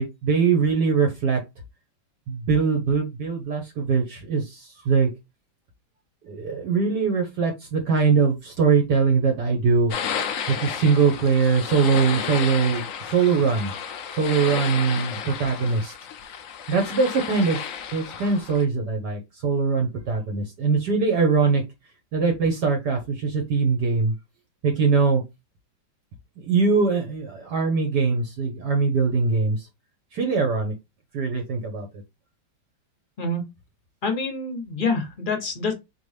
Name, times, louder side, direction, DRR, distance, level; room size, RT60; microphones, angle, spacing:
voice 1, 0.0-1.4 2.3-5.1 6.3-9.9 10.5-13.7 14.2-15.9 16.7-17.6 17.9-21.6 22.1-24.1 24.6-25.2 26.4-29.7 30.1-30.7 31.1-31.9, right 5 dB, 65° right, 1.4 m, -22 dB
sound 1, 9.9-18.6, left 7 dB, 75° left, 0.7 m, -32 dB
voice 2, 34.0-35.7, left 3 dB, 40° left, 0.8 m, -26 dB
4.1 x 3.4 x 3.2 m
omnidirectional pair, 2.1 m